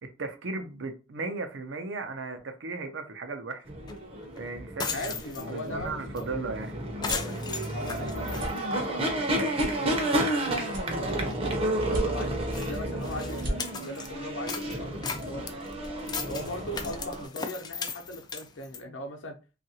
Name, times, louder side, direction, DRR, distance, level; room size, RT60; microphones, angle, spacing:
voice 1, 0.0-3.6 4.4-6.7, right 3 dB, 70° right, 0.6 m, -36 dB
sound 1, 3.7-17.3, right 1 dB, 30° right, 0.6 m, -31 dB
sound 2, 3.9-4.0 4.3-4.4 4.7-5.7 6.2-6.3 6.5-6.7 7.0-9.2 9.6-9.7 10.2-10.3 10.6-10.8 11.3-11.4 12.0-12.1 12.5-14.1 14.5-18.8, left 5 dB, 20° left, 0.3 m, -37 dB
voice 2, 4.9-6.2 7.0-12.4 12.7-15.5 16.3-19.4, left 1 dB, 80° left, 0.7 m, -39 dB
sound 3, 6.9-7.4 7.9-8.1 8.3-8.5 9.0-9.1 9.5-10.3 10.7-11.3 11.8-12.5 12.9-13.0 13.3-13.6, right 1 dB, 50° right, 1.0 m, -35 dB
2.8 x 2.5 x 2.8 m
head